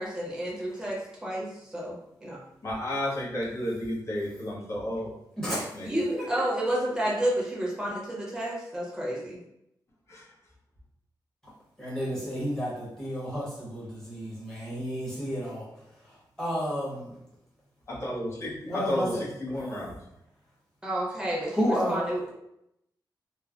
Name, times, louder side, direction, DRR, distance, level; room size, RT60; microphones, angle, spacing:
voice 1, 0.0-2.4 5.8-9.4 20.8-22.3, right 1 dB, 10° right, -5 dB, 0.8 m, -30 dB
voice 2, 2.6-5.2 5.5-5.9 10.1-10.3 17.9-20.0, left 1 dB, 40° left, -6 dB, 0.9 m, -32 dB
voice 3, 5.4-5.7 6.6-6.7 11.8-15.7 16.4-17.2 18.7-19.1 21.5-22.0, equal, 5° left, -7 dB, 1.1 m, -31 dB
3.1 x 2.1 x 2.4 m, 0.80 s
wide cardioid pair, 125°, 8 cm